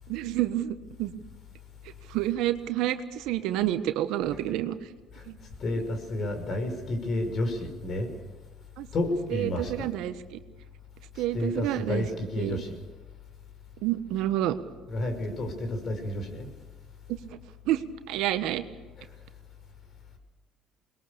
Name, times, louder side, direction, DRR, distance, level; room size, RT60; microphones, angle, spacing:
voice 1, 0.1-1.1 2.1-4.7 5.3-5.4 8.8-8.9 9.3-10.4 11.2-12.0 12.4-12.6 13.8-14.6 17.7-17.8 18.1-18.6, right 13 dB, 75° right, 1.3 m, -29 dB
voice 2, 5.6-8.1 8.9-9.9 11.3-12.8 14.9-16.5 19.0-19.1, left 1 dB, 50° left, 5.7 m, -30 dB
23.0 x 21.0 x 6.9 m
supercardioid pair, 75°, 0 cm